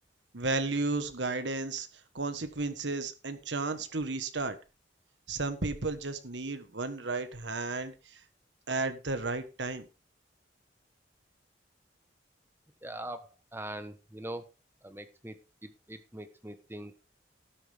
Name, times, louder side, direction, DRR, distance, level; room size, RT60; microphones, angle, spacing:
voice 1, 0.3-1.9 2.1-4.6 5.3-7.9 8.7-9.8, right 3 dB, 70° right, 1.4 m, -33 dB
voice 2, 12.8-14.5 14.8-15.4 15.6-16.9, right 1 dB, 15° right, 1.1 m, -42 dB
12.5 x 10.0 x 3.5 m
head